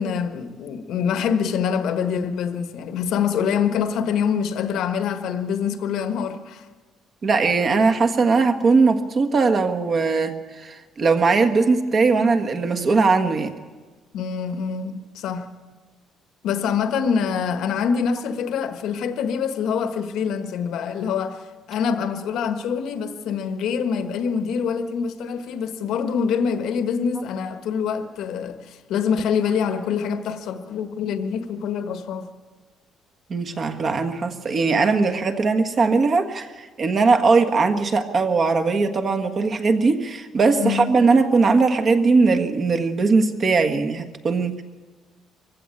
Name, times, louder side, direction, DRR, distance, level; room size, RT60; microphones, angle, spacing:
voice 1, 0.0-6.6 14.1-15.5 16.4-32.3 40.6-41.0, left 7 dB, 75° left, 1.5 m, -25 dB
voice 2, 7.2-13.5 33.3-44.6, right 4 dB, 40° right, 1.6 m, -20 dB
23.0 x 15.5 x 8.6 m
cardioid pair, 130°, 0 cm